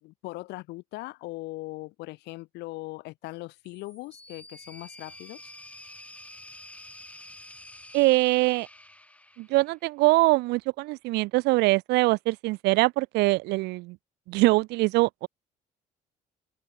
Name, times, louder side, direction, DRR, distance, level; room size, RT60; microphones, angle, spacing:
voice 1, 0.0-5.5, left 20 dB, 90° left, 1.6 m, -40 dB
sound 1, 3.6-9.9, left 1 dB, 10° left, 2.6 m, -48 dB
voice 2, 7.9-8.7 9.4-14.0 14.3-15.3, right 21 dB, 85° right, 0.5 m, -23 dB
open air
cardioid pair, 110°, 17 cm